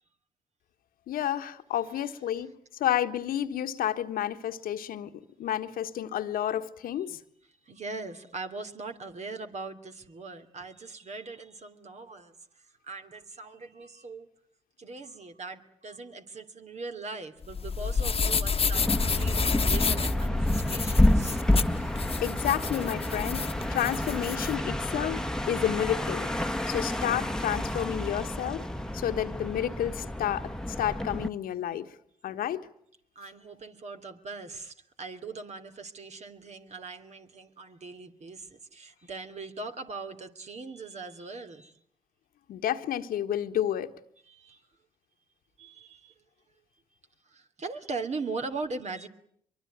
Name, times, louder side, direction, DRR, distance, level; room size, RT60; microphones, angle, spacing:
voice 1, 1.1-2.5 2.8-5.1 5.4-7.2 22.2-26.3 26.7-28.7 28.9-30.5 30.8-31.9 32.2-32.7 42.5-43.9, left 11 dB, 70° left, 1.5 m, -30 dB
voice 2, 7.6-14.3 14.8-21.4 21.7-21.9 33.1-41.8 44.2-44.7 45.6-46.1 47.3-49.1, right 3 dB, 50° right, 3.0 m, -40 dB
sound 1, 17.4-24.5, left 5 dB, 40° left, 1.4 m, -30 dB
sound 2, 18.7-31.3, left 1 dB, 5° left, 1.5 m, -29 dB
23.5 x 23.5 x 9.4 m
hypercardioid pair, 50°, 15 cm